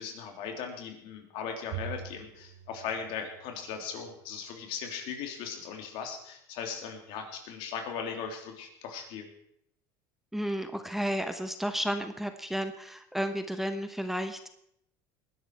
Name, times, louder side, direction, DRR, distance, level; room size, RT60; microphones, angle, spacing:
voice 1, 0.0-9.3, left 6 dB, 65° left, 4 dB, 3.3 m, -38 dB
Bowed string instrument, 1.7-4.2, right 8 dB, 85° right, 2.9 m, -44 dB
voice 2, 10.3-14.5, equal, 5° right, 8 dB, 1.0 m, -32 dB
20.0 x 11.0 x 4.7 m, 0.76 s
supercardioid pair, 120°, 10 cm